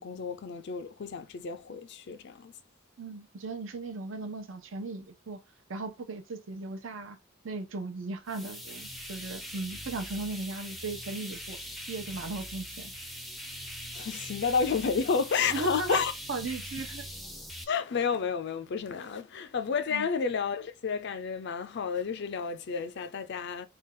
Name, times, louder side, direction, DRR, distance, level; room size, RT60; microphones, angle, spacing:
voice 1, 0.0-2.5 13.9-16.1 17.7-23.7, left 5 dB, 55° left, 0.4 m, -31 dB
voice 2, 3.0-5.4 5.7-7.2 7.4-11.6 11.9-12.9 15.5-16.0 16.3-17.1 19.9-20.1, right 3 dB, 65° right, 0.7 m, -37 dB
sound 1, 8.3-17.6, equal, ahead, 0.5 m, -42 dB
3.4 x 2.3 x 3.6 m
head